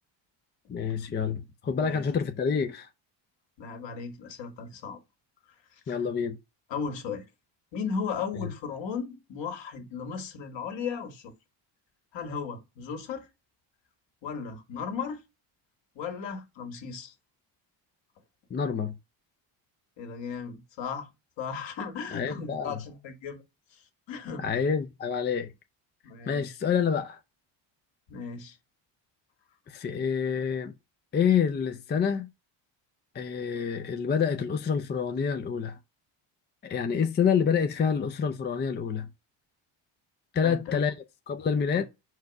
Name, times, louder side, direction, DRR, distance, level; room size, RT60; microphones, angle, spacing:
voice 1, 0.7-2.9 5.9-6.4 8.4-8.5 18.5-19.0 22.1-22.8 24.4-25.5 26.3-27.2 29.7-30.7 31.1-32.3 33.1-35.8 36.6-39.1 40.3-40.9 41.3-41.9, left 6 dB, 20° left, 0.5 m, -27 dB
voice 2, 3.6-5.0 5.7-6.0 6.7-7.3 7.7-11.3 12.1-13.3 14.2-15.2 16.0-17.1 20.0-21.1 21.4-23.4 23.7-24.5 26.0-26.6 28.1-28.6 40.4-40.8 41.7-41.8, left 6 dB, 60° left, 2.0 m, -36 dB
4.7 x 4.7 x 5.2 m
cardioid pair, 100°, 50 cm